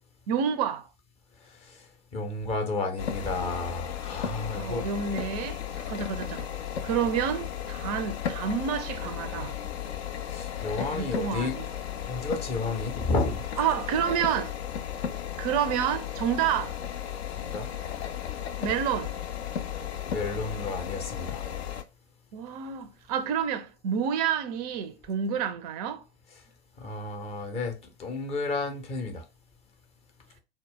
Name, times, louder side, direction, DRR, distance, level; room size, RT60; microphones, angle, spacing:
voice 1, 0.3-0.9 4.5-6.5 6.8-9.6 10.7-11.7 13.6-14.5 15.4-16.8 18.6-19.2 22.3-26.0, right 8 dB, 35° right, 0.4 m, -29 dB
voice 2, 2.1-4.9 10.3-11.6 12.1-13.4 17.4-17.7 20.1-21.5 26.8-27.7 28.0-29.2, left 3 dB, 20° left, 0.5 m, -31 dB
sound 1, 3.0-21.8, left 9 dB, 65° left, 0.5 m, -35 dB
2.1 x 2.0 x 3.6 m
figure-of-eight pair, 100°, 34 cm